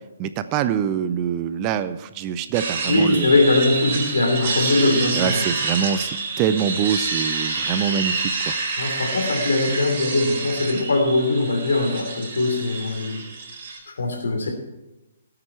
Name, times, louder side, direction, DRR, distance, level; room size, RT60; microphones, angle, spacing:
voice 1, 0.2-3.3 4.4-4.5 5.1-6.1 6.4-8.5, right 8 dB, 25° right, 12 dB, 0.6 m, -24 dB
sound 1, 2.5-13.8, right 4 dB, 45° right, 4.6 m, -28 dB
voice 2, 2.9-5.5 8.8-13.3 13.9-14.5, left 2 dB, 65° left, 3 dB, 3.2 m, -21 dB
17.0 x 8.8 x 4.5 m, 0.98 s
figure-of-eight pair, 130°, 0 cm